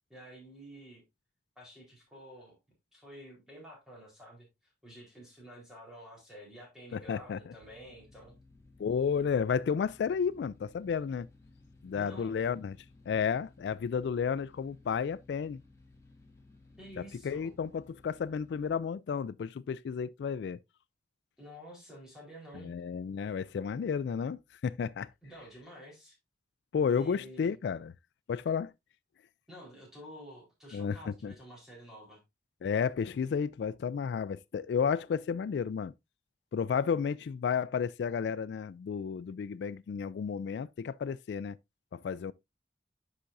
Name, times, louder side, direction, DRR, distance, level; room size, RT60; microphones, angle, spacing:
voice 1, 0.1-1.0 1.6-2.6 2.9-4.5 4.8-8.3 11.9-12.4 16.8-17.5 21.4-22.7 25.2-26.2 26.9-27.5 29.5-32.2, equal, 5° right, 4.0 m, -50 dB
voice 2, 6.9-7.5 8.8-11.3 11.8-12.8 13.1-15.6 17.0-20.6 22.5-25.1 26.7-27.9 28.3-28.7 30.7-31.3 32.6-35.9 36.5-41.6 41.9-42.3, left 6 dB, 80° left, 0.3 m, -32 dB
sound 1, 7.6-18.7, left 2 dB, 15° left, 1.6 m, -59 dB
9.9 x 5.8 x 2.6 m
head